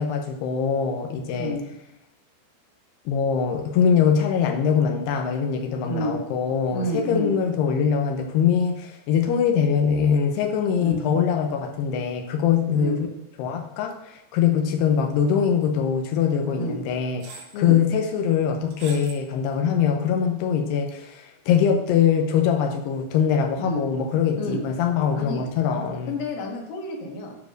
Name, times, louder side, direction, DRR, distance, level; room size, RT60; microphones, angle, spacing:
voice 1, 0.0-1.6 3.1-12.9 13.4-26.1, left 7 dB, 90° left, 4 dB, 2.8 m, -23 dB
voice 2, 1.3-1.7 5.8-6.2 6.7-7.3 10.8-11.0 12.7-13.0 16.5-16.8 17.5-17.8 21.5-21.7 23.6-23.9 24.4-24.6 25.1-25.4 26.1-27.4, equal, 65° left, 1 dB, 3.0 m, -29 dB
sound 1, 15.0-15.3 15.6-15.7 16.6-16.7 17.2-17.6 18.7-19.2 19.7-19.8, right 5 dB, 85° right, 4.0 m, -42 dB
9.3 x 5.0 x 6.3 m, 0.86 s
omnidirectional pair, 4.7 m